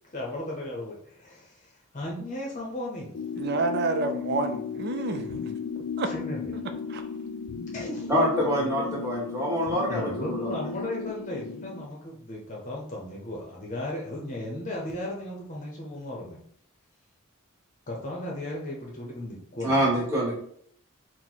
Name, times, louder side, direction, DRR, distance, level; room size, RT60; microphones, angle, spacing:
voice 1, 0.0-3.3 6.0-6.6 7.7-9.0 9.9-16.4 17.9-20.0, left 1 dB, 35° left, -2 dB, 0.7 m, -36 dB
sound 1, 3.1-11.9, left 5 dB, 90° left, 0.4 m, -35 dB
voice 2, 3.4-5.5 6.0-6.1 6.9-7.0, right 3 dB, 50° right, 8 dB, 0.5 m, -28 dB
voice 3, 8.1-10.5 19.6-20.3, equal, 15° right, -6 dB, 1.5 m, -25 dB
4.5 x 2.1 x 4.0 m, 0.64 s
head